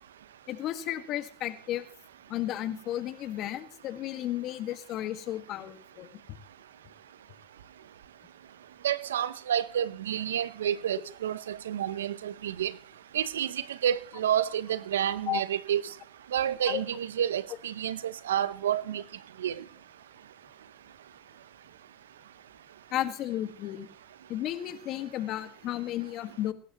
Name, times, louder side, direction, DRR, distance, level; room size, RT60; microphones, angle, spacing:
voice 1, 0.5-1.9 2.3-6.1 15.3-15.4 16.6-16.8 22.9-23.9 24.3-26.5, left 13 dB, 55° left, 1.7 m, -33 dB
voice 2, 8.8-12.7 13.1-15.8 16.3-19.0 19.4-19.5, right 10 dB, 90° right, 0.7 m, -29 dB
22.0 x 11.5 x 3.0 m
hypercardioid pair, 90°, 0 cm